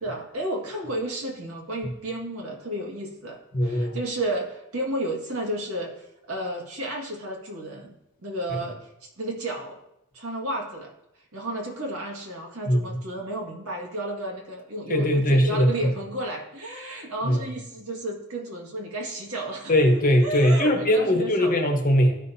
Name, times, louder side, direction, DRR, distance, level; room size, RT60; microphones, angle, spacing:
voice 1, 0.0-7.9 8.2-9.8 10.1-10.9 11.3-19.7 20.2-21.6, right 1 dB, 85° right, 0 dB, 1.9 m, -32 dB
voice 2, 3.5-4.0 12.7-12.8 14.9-15.7 17.2-17.4 19.7-22.2, equal, 40° left, 4 dB, 1.1 m, -20 dB
13.0 x 5.7 x 2.7 m, 0.86 s
head